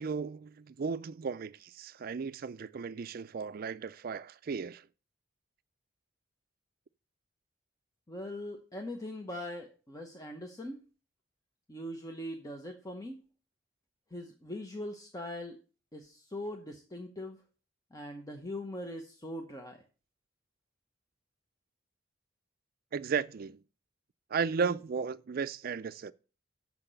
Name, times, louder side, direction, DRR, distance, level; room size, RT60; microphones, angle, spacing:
voice 1, 0.0-4.9 22.9-23.6 24.3-26.1, right 5 dB, 50° right, 0.4 m, -35 dB
voice 2, 8.1-10.8 11.7-13.2 14.1-15.6 15.9-17.4 17.9-19.8, left 1 dB, 20° left, 0.9 m, -41 dB
7.2 x 5.9 x 6.7 m
head